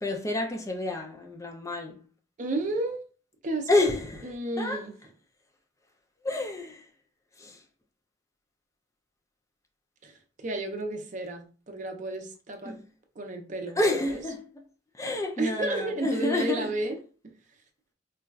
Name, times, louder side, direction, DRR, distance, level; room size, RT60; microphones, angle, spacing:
voice 1, 0.0-2.0 3.7-4.8 6.2-6.9 7.4-7.6 12.6-12.9 13.8-14.5 14.9-16.9, left 2 dB, 15° left, 0.4 m, -29 dB
voice 2, 2.4-3.0 3.4-3.7 4.2-4.9 10.0-12.8 13.2-13.8 14.1-14.2 15.4-17.0, right 2 dB, 45° right, 0.5 m, -32 dB
3.9 x 2.4 x 2.3 m
head